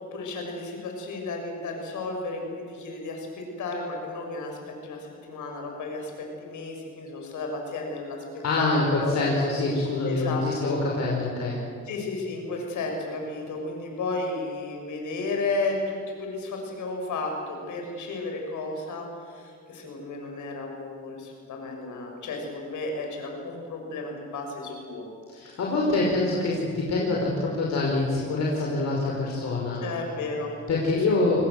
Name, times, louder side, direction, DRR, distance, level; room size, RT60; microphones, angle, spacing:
voice 1, 0.1-8.2 8.6-9.1 10.0-10.7 11.8-25.0 25.5-25.6 29.8-30.5 31.1-31.2, left 3 dB, 75° left, 2 dB, 7.0 m, -33 dB
voice 2, 8.4-11.6 25.3-29.8 30.7-31.5, left 2 dB, 60° left, -3 dB, 5.3 m, -25 dB
27.5 x 20.5 x 7.8 m, 2.2 s
cardioid pair, 90°, 30 cm